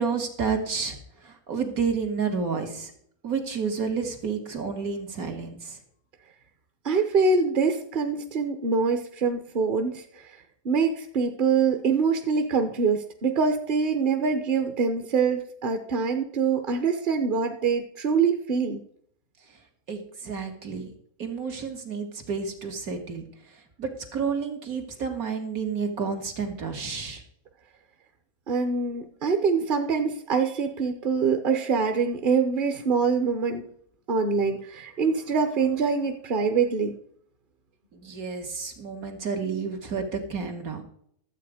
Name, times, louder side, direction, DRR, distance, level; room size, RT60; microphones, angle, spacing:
voice 1, 0.0-2.9 3.2-5.8 19.9-20.9 21.2-23.2 23.5-27.2 37.9-40.8, right 5 dB, 75° right, 4 dB, 2.3 m, -30 dB
voice 2, 6.8-10.4 10.6-18.8 28.5-33.7 34.1-37.0, right 5 dB, 40° right, 6 dB, 0.9 m, -24 dB
12.5 x 8.1 x 4.9 m, 0.66 s
omnidirectional pair, 1.5 m